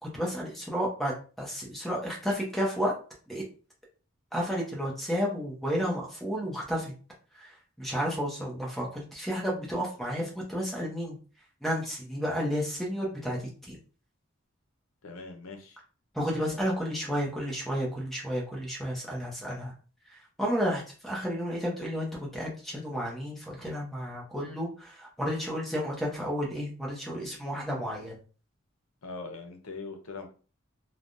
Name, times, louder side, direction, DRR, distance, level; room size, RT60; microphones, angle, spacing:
voice 1, 0.0-2.9 3.3-3.4 4.3-6.9 7.4-11.2 11.6-13.8 16.1-19.7 20.4-28.2, equal, ahead, -3 dB, 0.8 m, -32 dB
voice 2, 15.0-15.8 29.0-30.3, left 3 dB, 85° left, 4 dB, 0.6 m, -41 dB
3.3 x 2.2 x 2.6 m, 0.37 s
head